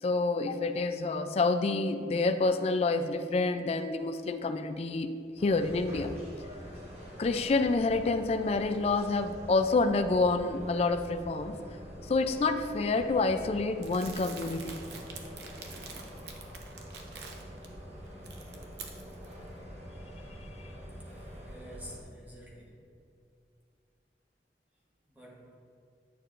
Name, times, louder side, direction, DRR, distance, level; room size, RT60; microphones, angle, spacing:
voice 1, 0.0-6.2 7.2-11.6 12.1-14.8, left 3 dB, 35° left, 9 dB, 0.3 m, -28 dB
sound 1, 5.4-22.0, equal, 35° right, 1.2 m, -46 dB
Crumpling crinkling, 13.8-17.7 18.1-19.3, right 5 dB, 70° right, 0.8 m, -46 dB
voice 2, 21.1-22.8 25.1-25.6, equal, 10° right, -4 dB, 1.1 m, -50 dB
9.3 x 6.5 x 2.5 m, 2.5 s
head